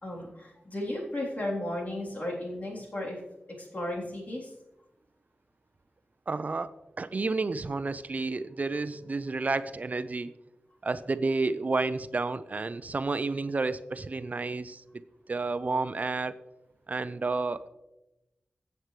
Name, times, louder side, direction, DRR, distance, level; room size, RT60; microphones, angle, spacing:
voice 1, 0.0-3.2 3.6-4.5, left 1 dB, 50° left, -4 dB, 3.6 m, -34 dB
voice 2, 6.3-6.7 7.0-10.3 10.8-14.8 15.3-16.4 16.9-17.7, right 3 dB, 50° right, 13 dB, 0.5 m, -30 dB
15.5 x 7.9 x 3.3 m, 0.94 s
wide cardioid pair, 90°, 3 cm